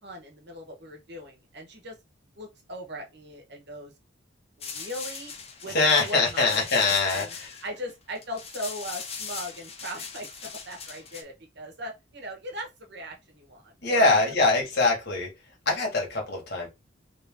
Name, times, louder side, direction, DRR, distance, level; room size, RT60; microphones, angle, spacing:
voice 1, 0.0-1.9 2.4-3.9 4.6-5.3 5.6-7.4 7.6-14.3, right 1 dB, 60° right, 1.3 m, -39 dB
sound 1, 4.6-11.2, left 6 dB, 30° left, 0.7 m, -39 dB
voice 2, 5.7-7.5 13.8-15.3 15.6-16.7, left 3 dB, 55° left, 1.6 m, -23 dB
3.4 x 2.8 x 3.6 m
head